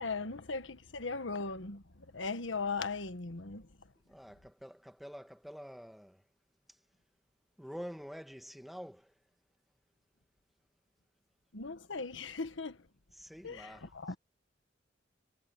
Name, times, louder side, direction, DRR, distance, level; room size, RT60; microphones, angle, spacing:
voice 1, 0.0-3.7 11.5-12.9 13.4-14.2, left 4 dB, 85° left, 1.4 m, -38 dB
voice 2, 4.1-6.2 7.6-9.1 13.2-13.9, equal, ahead, 1.6 m, -47 dB
head